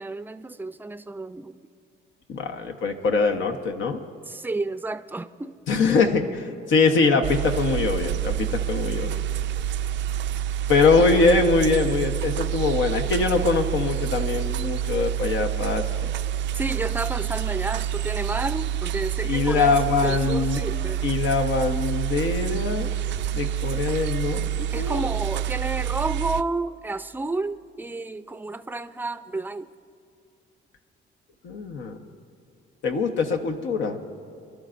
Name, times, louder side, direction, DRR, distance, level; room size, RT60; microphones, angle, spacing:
voice 1, 0.0-1.6 4.3-5.6 16.5-21.1 24.7-29.7, right 2 dB, 10° right, 11 dB, 0.5 m, -31 dB
voice 2, 2.3-4.0 5.7-9.2 10.7-16.1 19.2-20.6 21.0-22.9 23.3-24.5 24.8-25.1 31.4-32.0 32.8-34.0, left 4 dB, 75° left, 4 dB, 1.0 m, -23 dB
sound 1, 7.2-26.4, right 11 dB, 65° right, 0.4 m, -28 dB
27.5 x 12.0 x 2.6 m, 2.6 s
cardioid pair, 90°, 20 cm